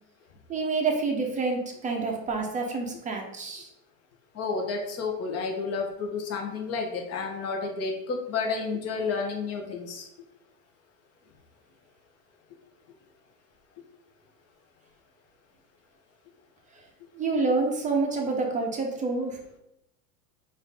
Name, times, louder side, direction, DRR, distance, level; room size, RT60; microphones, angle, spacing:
voice 1, 0.5-3.7 17.1-19.6, right 3 dB, 15° right, 1 dB, 0.7 m, -28 dB
voice 2, 4.3-10.1, left 4 dB, 30° left, 1 dB, 1.0 m, -31 dB
3.9 x 2.7 x 3.4 m, 0.81 s
hypercardioid pair, 110°, 49 cm